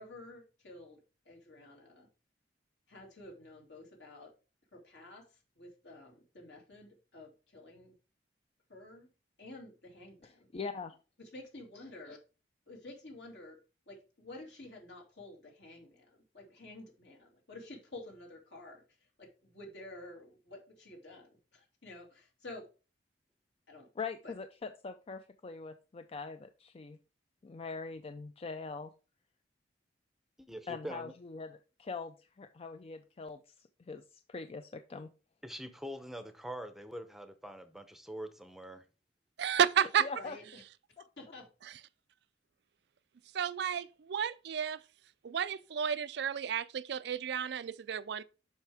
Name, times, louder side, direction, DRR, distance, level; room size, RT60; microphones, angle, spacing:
voice 1, 0.0-2.1 2.9-4.3 4.7-7.9 8.7-9.1 9.4-10.5 11.2-12.2 12.7-13.6 13.9-22.7 23.7-23.9 24.2-24.3 40.2-40.6 41.2-41.5, left 2 dB, 75° left, 2.6 m, -51 dB
voice 2, 10.5-11.0 24.0-27.0 27.4-28.9 30.7-33.4 33.8-34.0 34.3-35.1 40.0-40.4, left 4 dB, 35° left, 0.4 m, -42 dB
voice 3, 30.4-31.1 35.4-38.8, equal, ahead, 0.7 m, -44 dB
voice 4, 39.4-40.1 43.3-44.8 45.2-48.2, right 8 dB, 65° right, 0.4 m, -31 dB
7.3 x 5.7 x 3.5 m
head